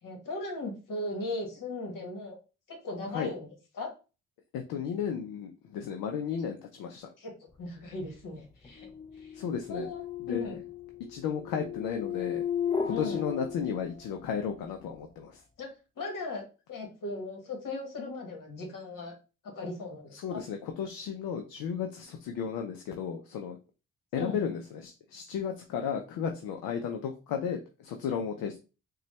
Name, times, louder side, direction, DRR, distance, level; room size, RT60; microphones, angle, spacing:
voice 1, 0.0-2.4 2.7-3.5 3.7-3.9 7.2-7.3 7.6-8.9 9.2-9.3 9.7-10.0 10.3-10.6 12.9-13.2 15.6-15.7 16.0-19.1 19.5-20.4 24.2-24.4, left 2 dB, 65° left, 2 dB, 1.4 m, -37 dB
voice 2, 4.5-7.1 9.3-9.9 10.3-10.6 11.1-12.4 12.8-15.4 20.1-23.6 24.1-28.6, left 7 dB, 80° left, 4 dB, 0.5 m, -34 dB
sound 1, 7.8-14.3, left 8 dB, 15° left, 0.4 m, -36 dB
3.9 x 2.3 x 3.1 m, 0.32 s
supercardioid pair, 60°, 35 cm